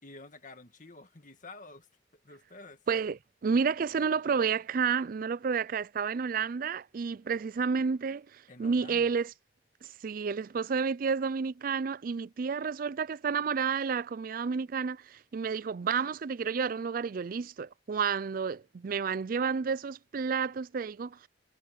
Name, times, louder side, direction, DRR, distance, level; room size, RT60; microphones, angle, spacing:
voice 1, 0.0-1.9 2.2-2.8 8.5-9.1, left 3 dB, 45° left, 2.0 m, -49 dB
voice 2, 2.9-9.3 9.8-21.3, right 5 dB, 50° right, 0.4 m, -30 dB
head